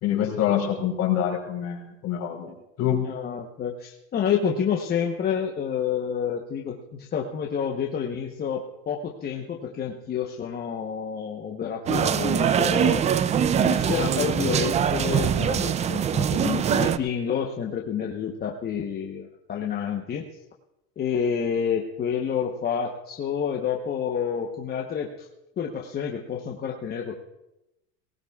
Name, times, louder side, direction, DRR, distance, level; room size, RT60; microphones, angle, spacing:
voice 1, 0.0-3.1, left 10 dB, 50° left, 0 dB, 4.3 m, -26 dB
voice 2, 3.0-13.0 13.6-20.3 21.0-25.3 25.6-27.2, left 7 dB, 30° left, 0 dB, 1.1 m, -29 dB
sound 1, 11.9-17.0, right 8 dB, 20° right, 0.4 m, -23 dB
19.0 x 18.0 x 2.4 m, 0.92 s
supercardioid pair, 130°, 33 cm